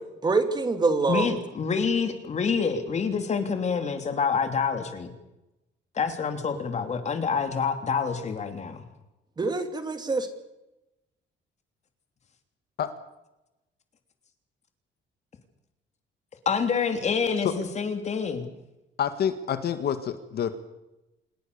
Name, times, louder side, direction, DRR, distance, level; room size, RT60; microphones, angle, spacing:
voice 1, 0.2-1.3 9.4-10.3, right 3 dB, 20° right, 8 dB, 2.5 m, -25 dB
voice 2, 1.1-5.1 5.9-8.8 16.4-18.5, left 5 dB, 35° left, 7 dB, 3.2 m, -27 dB
voice 3, 19.0-20.5, left 9 dB, 55° left, 10 dB, 1.9 m, -27 dB
27.5 x 20.5 x 7.0 m, 0.95 s
cardioid pair, 160°, 20 cm